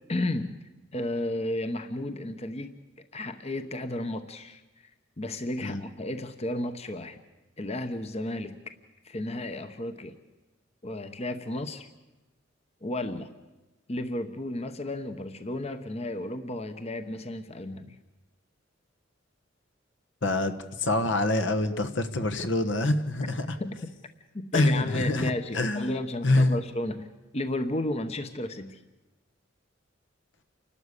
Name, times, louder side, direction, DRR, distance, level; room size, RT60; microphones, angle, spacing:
voice 1, 0.1-4.9 5.2-7.2 7.6-8.6 9.0-10.2 10.8-11.9 12.8-13.3 13.9-18.0 23.6-23.8 24.3-28.8, left 1 dB, 35° left, 9 dB, 0.9 m, -33 dB
voice 2, 20.2-23.5 24.5-25.9 26.2-26.6, left 2 dB, 70° left, 9 dB, 1.3 m, -25 dB
29.0 x 12.5 x 8.2 m, 1.1 s
head